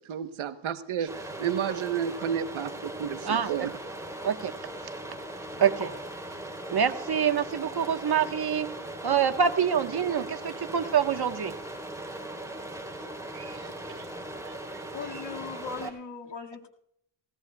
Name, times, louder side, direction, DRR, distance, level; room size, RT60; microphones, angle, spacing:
voice 1, 0.1-3.7, right 8 dB, 75° right, 9 dB, 1.1 m, -31 dB
sound 1, 1.1-15.9, right 1 dB, 5° right, 3.6 m, -39 dB
voice 2, 3.2-3.7 4.2-4.5 5.6-5.9 6.7-8.7 9.0-11.5 13.3-13.6 13.9-14.0 14.5-14.6, right 7 dB, 50° right, 7 dB, 1.4 m, -26 dB
voice 3, 14.9-16.7, left 5 dB, 55° left, 1 dB, 2.2 m, -38 dB
18.5 x 17.0 x 2.3 m, 0.73 s
cardioid pair, 70°, 49 cm